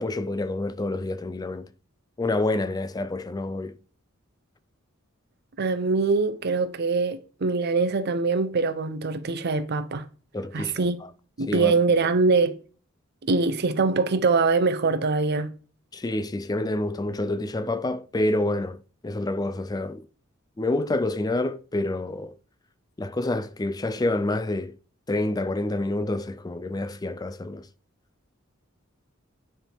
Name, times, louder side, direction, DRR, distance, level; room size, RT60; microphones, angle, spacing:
voice 1, 0.0-1.7 2.2-3.8 10.3-11.1 11.5-11.7 15.9-18.8 19.0-20.1 20.6-22.3 23.0-24.8 25.1-27.7, left 2 dB, 20° left, 0.4 m, -28 dB
voice 2, 5.6-10.1 10.5-11.0 11.4-12.6 13.2-15.5, right 4 dB, 50° right, 0.6 m, -23 dB
9.2 x 3.5 x 4.5 m
head